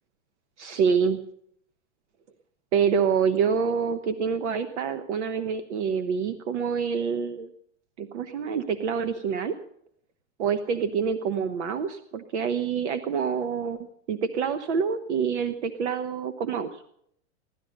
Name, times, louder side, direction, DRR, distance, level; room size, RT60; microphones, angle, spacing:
voice 1, 0.6-1.2 2.7-7.5 8.0-9.5 10.4-16.9, right 6 dB, 70° right, 11 dB, 1.1 m, -27 dB
17.0 x 12.0 x 6.5 m, 0.72 s
supercardioid pair, 145°, 36 cm